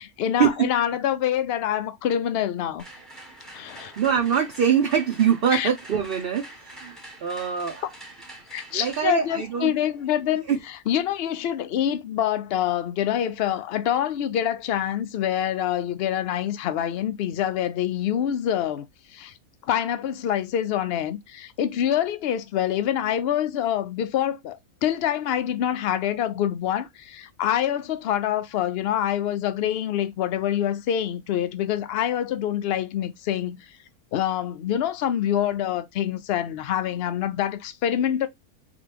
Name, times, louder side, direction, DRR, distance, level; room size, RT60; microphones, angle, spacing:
voice 1, 0.2-2.8 3.5-3.9 5.5-5.7 8.5-10.4 10.9-18.8 19.1-19.3 19.6-33.7 34.1-38.3, left 10 dB, 70° left, 0.5 m, -26 dB
sound 1, 2.8-10.8, right 1 dB, ahead, 1.0 m, -45 dB
voice 2, 4.0-7.8 8.7-9.7 10.5-10.6, right 8 dB, 50° right, 0.7 m, -23 dB
4.0 x 3.0 x 3.3 m
omnidirectional pair, 1.6 m